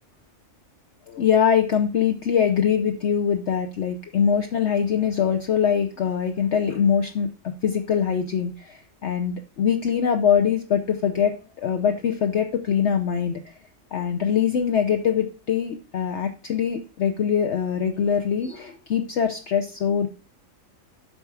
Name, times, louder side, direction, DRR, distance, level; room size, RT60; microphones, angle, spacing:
voice 1, 1.1-7.3 7.6-13.4 13.9-20.1, left 7 dB, 60° left, 6 dB, 1.0 m, -23 dB
9.0 x 5.9 x 4.7 m, 0.36 s
omnidirectional pair, 1.4 m